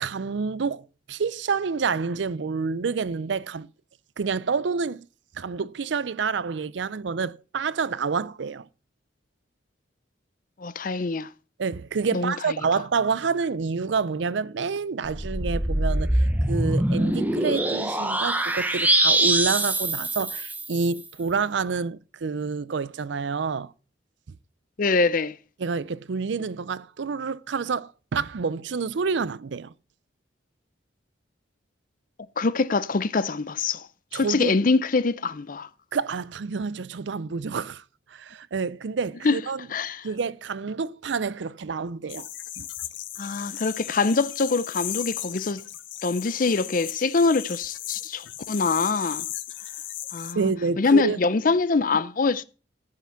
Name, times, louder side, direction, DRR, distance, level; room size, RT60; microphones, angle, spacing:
voice 1, 0.0-3.7 4.2-5.1 5.3-8.7 11.6-23.7 25.6-29.7 34.1-34.6 35.9-37.8 38.1-39.7 40.0-42.3 42.6-42.7 50.4-51.2, right 5 dB, 75° right, 0.5 m, -28 dB
voice 2, 10.6-11.3 12.1-12.3 24.8-25.4 32.4-33.9 34.1-35.7 39.2-39.4 39.7-40.0 43.2-45.6 46.0-49.2 50.1-50.5 50.8-52.4, left 4 dB, 45° left, 0.6 m, -24 dB
sound 1, 15.1-20.9, right 1 dB, 10° right, 1.1 m, -24 dB
sound 2, 42.1-50.3, left 13 dB, 90° left, 0.9 m, -36 dB
14.0 x 5.9 x 5.8 m
head